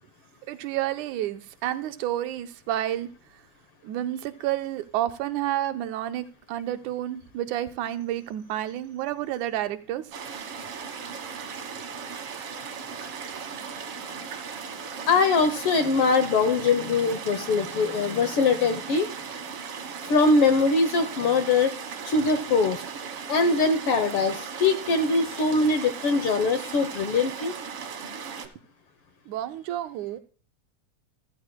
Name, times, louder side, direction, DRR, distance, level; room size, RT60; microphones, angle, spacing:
voice 1, 0.5-3.1 3.8-10.0 29.3-30.2, right 13 dB, 80° right, 10 dB, 2.2 m, -30 dB
sound 1, 10.1-28.5, right 6 dB, 55° right, 2.1 m, -37 dB
voice 2, 15.1-19.1 20.1-21.7 22.0-22.8 23.3-27.5, left 4 dB, 65° left, 9 dB, 1.5 m, -22 dB
14.5 x 14.5 x 2.2 m, 0.40 s
omnidirectional pair, 3.4 m